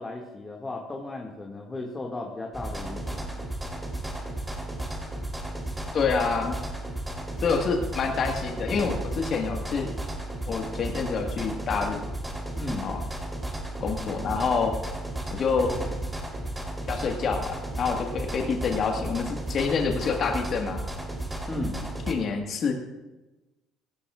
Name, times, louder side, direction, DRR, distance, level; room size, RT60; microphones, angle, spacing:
voice 1, 0.0-3.4 12.6-12.9 21.5-21.8, left 2 dB, 20° left, 0 dB, 2.1 m, -35 dB
sound 1, 2.5-22.1, right 1 dB, 10° right, 3.5 m, -34 dB
voice 2, 5.9-6.6 7.4-9.9 10.5-12.0 12.8-13.0 13.8-14.8 15.3-15.7 16.9-20.8 22.1-22.7, left 5 dB, 45° left, 3 dB, 1.6 m, -27 dB
17.5 x 16.5 x 2.5 m, 1.1 s
hypercardioid pair, 55°, 0 cm